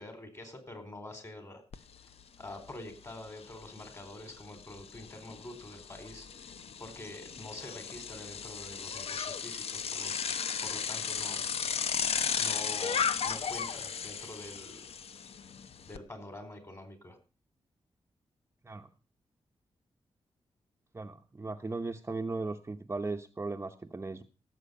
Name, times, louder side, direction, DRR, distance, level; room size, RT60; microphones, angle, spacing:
voice 1, 0.0-1.6 2.4-6.3 6.8-10.1 10.6-11.4 12.4-14.8 15.8-17.2, left 2 dB, 30° left, 8 dB, 4.5 m, -46 dB
Bicycle, 1.7-1.8 2.2-16.0, left 7 dB, 75° left, 0.8 m, -35 dB
voice 2, 20.9-24.2, right 3 dB, 25° right, 5 dB, 0.9 m, -37 dB
17.5 x 7.8 x 5.3 m, 0.33 s
wide cardioid pair, 95°, 10 cm